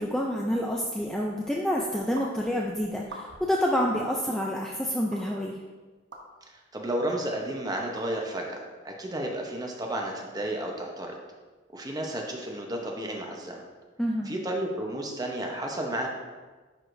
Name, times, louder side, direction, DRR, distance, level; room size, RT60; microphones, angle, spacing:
voice 1, 0.0-5.6 14.0-14.3, equal, 5° left, -2 dB, 0.4 m, -28 dB
sound 1, 2.2-2.3 3.0-3.5 4.1-4.2 5.1-5.2 6.1-6.2 7.1-7.2 8.0-8.1, right 2 dB, 80° right, 1.0 m, -42 dB
voice 2, 6.5-11.2 11.7-13.7 14.3-16.1, right 1 dB, 20° right, 1 dB, 0.8 m, -32 dB
10.5 x 4.8 x 2.6 m, 1.3 s
head